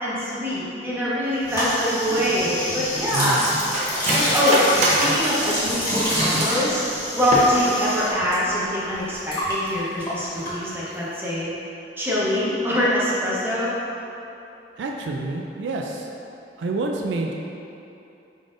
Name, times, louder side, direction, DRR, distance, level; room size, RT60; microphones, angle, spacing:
voice 1, 0.0-3.4 3.9-6.8 7.1-11.5 12.0-13.7, equal, 15° right, -8 dB, 0.9 m, -24 dB
sound 1, 1.4-8.4 8.6-11.0, equal, 25° left, 1.2 m, -27 dB
Cutlery silverware, 2.3-6.7 7.2-7.9 8.2-8.3 8.6-9.0 9.3-9.5, right 1 dB, 40° right, 0.7 m, -25 dB
voice 2, 3.1-3.4 14.8-16.1 16.6-17.3, right 3 dB, 75° right, 1 dB, 0.3 m, -27 dB
4.9 x 3.9 x 2.5 m, 2.8 s
head